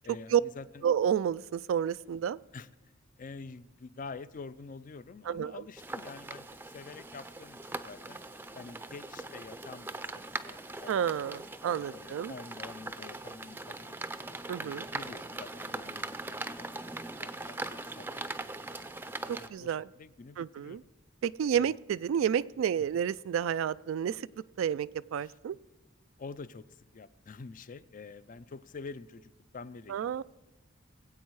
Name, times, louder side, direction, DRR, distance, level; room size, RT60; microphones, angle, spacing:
voice 1, 0.0-0.8 2.5-2.7 3.2-8.2 8.5-14.0 14.6-19.0 19.3-20.8 21.5-21.8 25.2-25.3 26.2-30.2, left 4 dB, 40° left, 16 dB, 0.5 m, -47 dB
voice 2, 0.8-2.4 5.3-5.6 10.9-12.3 14.5-14.9 19.3-19.9 20.4-20.8 21.2-24.3 24.6-25.6 29.9-30.2, right 8 dB, 75° right, 16 dB, 0.3 m, -30 dB
sound 1, 5.8-19.5, right 2 dB, 10° right, 0.5 m, -41 dB
20.5 x 8.2 x 4.7 m, 1.1 s
head